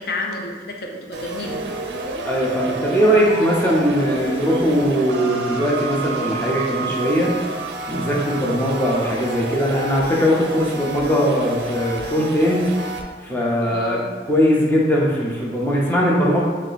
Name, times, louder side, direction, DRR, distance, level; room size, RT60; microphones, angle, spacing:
voice 1, 0.0-1.6 13.6-14.1, left 2 dB, 60° left, 1 dB, 0.5 m, -30 dB
sound 1, 1.1-13.0, right 3 dB, 75° right, 0.4 m, -30 dB
voice 2, 2.2-7.3 7.9-12.6 13.2-14.0 14.3-16.4, equal, 10° left, -4 dB, 0.6 m, -20 dB
3.1 x 2.8 x 4.0 m, 1.5 s
head